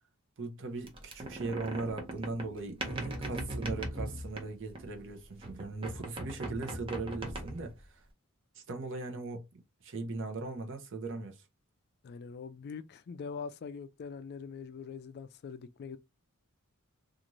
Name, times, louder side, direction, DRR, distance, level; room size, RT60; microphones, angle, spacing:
voice 1, 0.4-8.0 8.5-9.4 9.8-11.4, right 3 dB, 60° right, 0.7 m, -39 dB
sound 1, 0.9-5.0 5.4-7.8, right 1 dB, 25° right, 0.6 m, -39 dB
voice 2, 2.8-3.3 12.0-16.0, left 5 dB, 50° left, 0.3 m, -43 dB
3.0 x 2.5 x 2.5 m
head